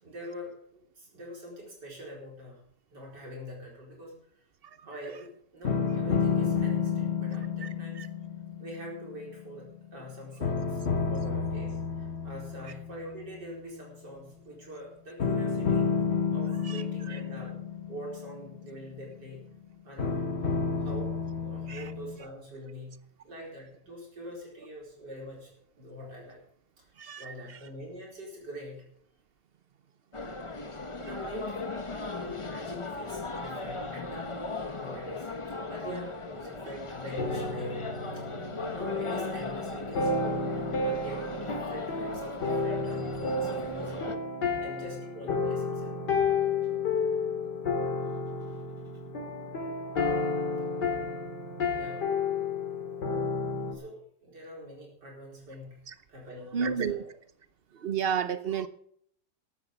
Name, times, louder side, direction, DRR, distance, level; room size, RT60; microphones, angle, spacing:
voice 1, 0.0-2.6 2.9-4.4 4.8-8.0 8.6-15.9 16.3-17.6 17.9-19.5 19.8-20.2 20.8-26.4 26.8-26.9 27.2-28.9 30.3-31.6 31.9-34.3 34.8-37.8 38.1-38.2 38.7-44.1 44.6-45.9 48.0-48.6 51.7-52.2 53.7-55.8 56.1-57.1, equal, 80° right, 5.2 m, -44 dB
sound 1, 5.6-10.0 10.4-13.7 15.2-19.2 20.0-22.2, left 6 dB, 40° left, 1.4 m, -31 dB
voice 2, 27.0-27.3 56.5-57.0 57.7-58.7, right 7 dB, 45° right, 0.8 m, -31 dB
sound 2, 30.1-44.2, left 3 dB, 25° left, 0.8 m, -38 dB
sound 3, 37.2-53.7, left 4 dB, 75° left, 2.9 m, -31 dB
14.5 x 11.5 x 5.3 m
omnidirectional pair, 1.8 m